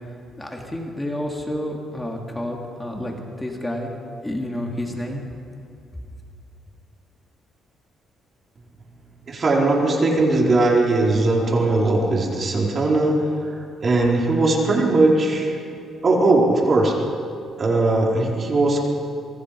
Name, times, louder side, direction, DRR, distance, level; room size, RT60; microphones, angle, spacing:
voice 1, 0.4-3.9 4.2-5.3, left 1 dB, 10° left, 0 dB, 3.4 m, -29 dB
voice 2, 9.3-13.2 13.8-15.6 16.0-16.9 17.6-18.8, right 2 dB, 40° right, -1 dB, 4.5 m, -19 dB
27.0 x 22.0 x 5.1 m, 2.5 s
cardioid pair, 90°, 0 cm